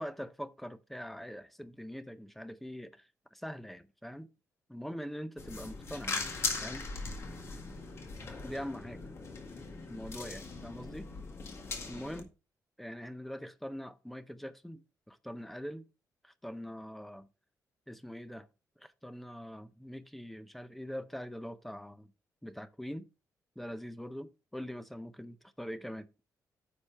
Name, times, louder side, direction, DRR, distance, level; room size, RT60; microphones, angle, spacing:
voice 1, 0.0-4.3 4.7-6.3 6.6-6.8 8.4-9.0 9.9-11.1 11.9-12.3 12.8-15.8 16.2-17.3 17.9-18.5 18.8-22.1 22.4-23.1 23.6-26.1, equal, 5° left, 0.5 m, -43 dB
sound 1, 5.4-12.2, left 4 dB, 45° left, 1.9 m, -40 dB
9.8 x 6.1 x 3.3 m
wide cardioid pair, 165°, 7 cm